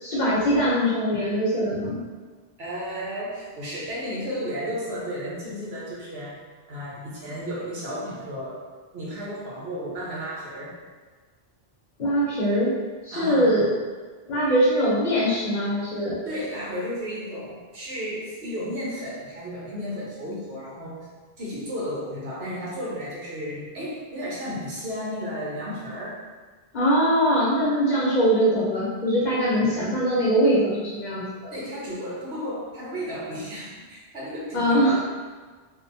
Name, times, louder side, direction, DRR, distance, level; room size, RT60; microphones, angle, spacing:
voice 1, 0.0-2.0 12.0-12.8 13.0-13.7 14.3-16.2 26.7-31.5 34.5-35.0, equal, 50° left, -7 dB, 0.8 m, -22 dB
voice 2, 2.6-6.4 6.7-8.6 8.9-10.8 13.1-13.6 16.2-21.1 21.4-26.2 31.5-35.0, equal, 75° right, -7 dB, 1.1 m, -33 dB
2.8 x 2.1 x 2.6 m, 1.4 s
omnidirectional pair, 1.1 m